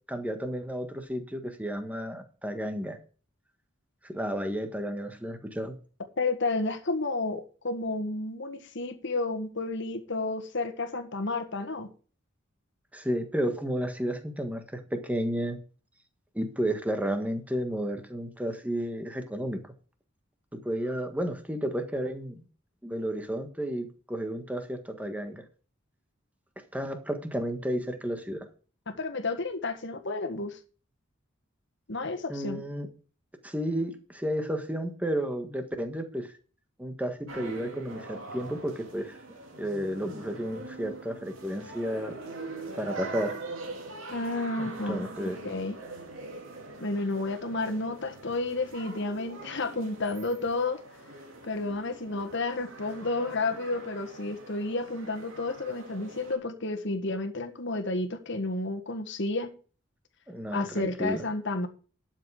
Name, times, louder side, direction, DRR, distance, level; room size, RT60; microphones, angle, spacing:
voice 1, 0.1-3.0 4.0-5.8 12.9-15.6 16.3-19.6 20.5-22.4 22.8-25.4 26.7-28.5 32.3-32.9 33.4-36.3 36.8-39.2 39.6-42.2 42.8-43.4 44.6-45.4 60.3-61.3, equal, 5° right, 1.5 m, -32 dB
voice 2, 6.2-11.9 28.9-30.6 31.9-32.6 44.1-45.8 46.8-50.8 51.4-59.5 60.5-61.7, left 2 dB, 60° left, 1.7 m, -31 dB
sound 1, 37.3-56.4, right 3 dB, 75° right, 3.3 m, -43 dB
12.0 x 7.5 x 4.9 m
head